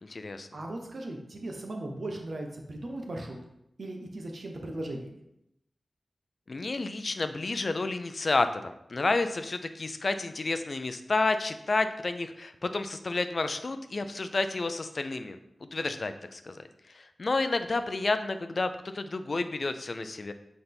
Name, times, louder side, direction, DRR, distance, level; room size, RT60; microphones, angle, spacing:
voice 1, 0.0-0.5 6.5-15.4 15.7-16.6 16.9-20.3, left 3 dB, 55° left, 9 dB, 0.5 m, -30 dB
voice 2, 0.5-3.4 3.8-5.2, right 1 dB, 65° right, 2 dB, 1.0 m, -37 dB
8.0 x 4.1 x 3.5 m, 0.82 s
wide cardioid pair, 65°, 0 cm